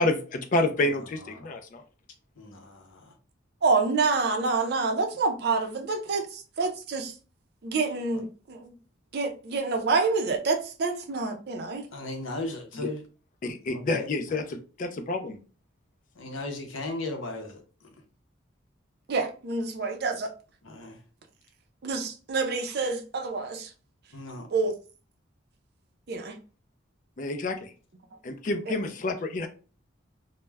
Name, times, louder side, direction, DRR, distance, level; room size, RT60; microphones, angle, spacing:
voice 1, 0.0-1.8 12.8-12.9 13.4-15.4 27.2-27.7 28.2-29.5, left 2 dB, 40° left, 0.4 m, -28 dB
voice 2, 2.4-3.1 8.1-8.2 11.9-13.0 13.7-14.1 16.2-17.9 20.6-21.0 24.1-24.5, left 2 dB, 85° left, 0.6 m, -37 dB
voice 3, 3.6-7.1 7.6-8.7 9.1-11.8 19.1-20.3 21.8-23.7 24.5-24.7 26.1-26.4 28.7-28.8, right 4 dB, 55° right, 0.4 m, -27 dB
2.2 x 2.0 x 3.2 m
head